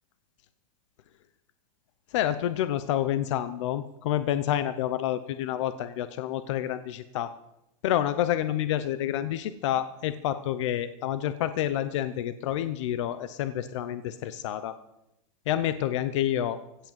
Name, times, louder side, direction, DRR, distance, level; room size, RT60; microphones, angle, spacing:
voice 1, 2.1-7.3 7.8-14.8 15.5-16.6, left 11 dB, 50° left, 12 dB, 0.8 m, -28 dB
16.5 x 8.7 x 7.6 m, 0.85 s
supercardioid pair, 175°, 19 cm